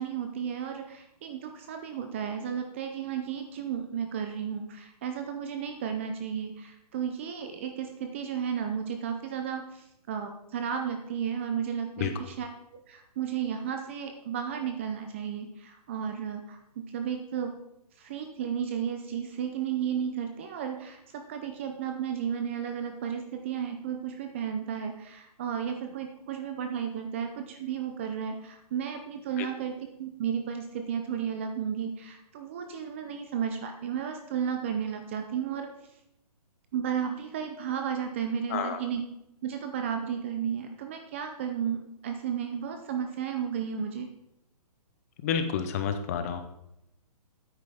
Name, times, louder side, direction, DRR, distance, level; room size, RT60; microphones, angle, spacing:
voice 1, 0.0-12.5 12.9-17.6 18.0-29.7 30.0-35.7 36.7-39.0 39.4-44.1, right 8 dB, 20° right, 5 dB, 0.5 m, -33 dB
voice 2, 45.2-46.4, left 7 dB, 25° left, 7 dB, 0.6 m, -29 dB
9.5 x 8.8 x 3.5 m, 0.84 s
hypercardioid pair, 160°, 20 cm